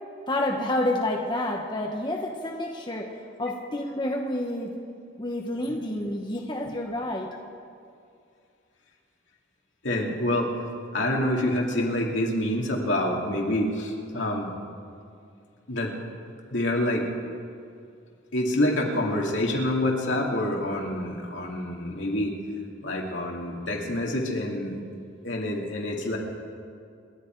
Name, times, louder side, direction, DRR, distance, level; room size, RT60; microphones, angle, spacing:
voice 1, 0.3-3.1 3.4-4.7 5.2-7.3, left 1 dB, 25° left, 1 dB, 1.0 m, -29 dB
voice 2, 9.8-10.5 10.9-14.5 15.7-15.9 16.5-17.1 18.3-22.3 22.8-24.7 25.2-26.2, left 1 dB, 70° left, -1 dB, 2.5 m, -27 dB
28.0 x 11.5 x 4.6 m, 2.4 s
head